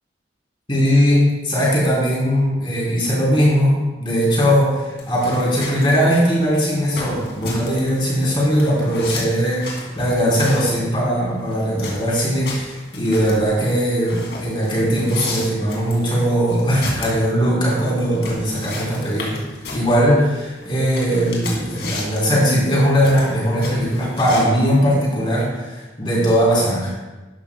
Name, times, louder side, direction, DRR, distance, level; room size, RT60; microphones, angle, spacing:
voice 1, 0.7-19.4 19.7-26.9, equal, 30° left, -6 dB, 3.7 m, -19 dB
sound 1, 5.0-24.4, left 3 dB, 65° left, 2.6 m, -34 dB
12.5 x 11.5 x 2.3 m, 1.1 s
head